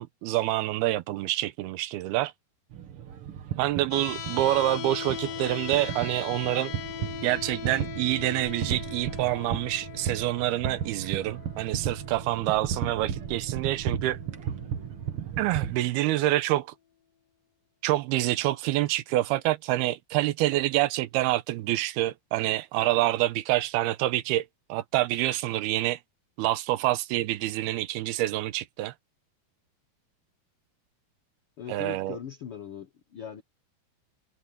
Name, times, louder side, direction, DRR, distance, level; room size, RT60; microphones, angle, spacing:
voice 1, 0.0-2.3 3.6-6.7 7.2-14.2 15.4-16.7 17.8-26.0 26.4-28.9 31.7-32.2, right 16 dB, 85° right, 2.8 m, -27 dB
sound 1, 2.7-15.8, right 9 dB, 65° right, 1.4 m, -35 dB
sound 2, 3.9-15.9, left 10 dB, 65° left, 3.3 m, -41 dB
voice 2, 31.6-33.4, left 9 dB, 80° left, 1.2 m, -40 dB
omnidirectional pair, 4.5 m